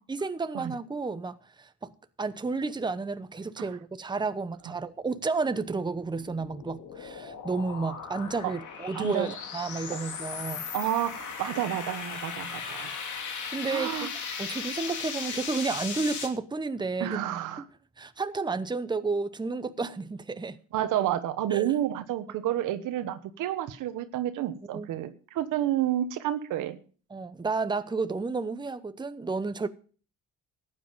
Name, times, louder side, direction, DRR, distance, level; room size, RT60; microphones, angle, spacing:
voice 1, 0.1-1.9 2.2-10.7 13.5-14.1 14.4-17.2 18.0-20.6 21.5-21.7 24.7-24.9 27.1-29.7, right 4 dB, 15° right, 0.8 m, -31 dB
sound 1, 6.0-16.3, left 6 dB, 75° left, 2.5 m, -37 dB
voice 2, 8.9-9.3 9.9-10.0 10.7-12.9 13.7-14.1 17.0-17.6 20.7-26.8, right 12 dB, 90° right, 1.2 m, -30 dB
14.5 x 9.6 x 5.2 m
cardioid pair, 90°, 30 cm